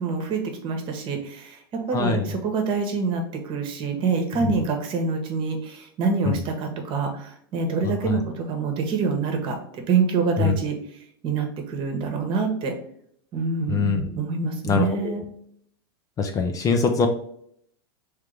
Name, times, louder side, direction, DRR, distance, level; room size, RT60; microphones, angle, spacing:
voice 1, 0.0-12.7 13.3-15.2, right 5 dB, 40° right, 5 dB, 1.1 m, -26 dB
voice 2, 1.9-2.2 4.4-4.6 6.3-6.4 8.1-8.2 10.4-10.5 13.7-14.2 14.7-15.2 16.2-17.1, left 5 dB, 25° left, 6 dB, 0.5 m, -23 dB
3.7 x 3.2 x 3.4 m, 0.67 s
hypercardioid pair, 115°, 13 cm